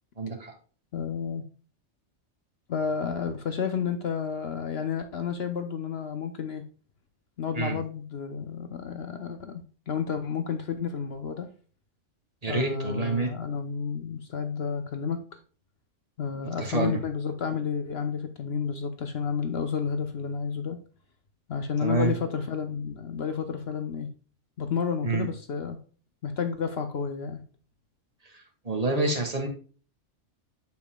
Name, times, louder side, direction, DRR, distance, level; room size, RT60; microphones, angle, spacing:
voice 1, 0.2-0.5 7.6-7.8 12.4-13.3 16.6-17.0 21.8-22.1 25.0-25.3 28.3-29.5, right 3 dB, 30° right, 2 dB, 1.9 m, -28 dB
voice 2, 0.9-1.4 2.7-6.6 7.4-11.5 12.5-15.2 16.2-20.8 21.5-24.1 24.6-25.8 26.2-27.4, left 6 dB, 60° left, 8 dB, 1.0 m, -31 dB
8.1 x 7.0 x 2.3 m, 0.38 s
omnidirectional pair, 1.3 m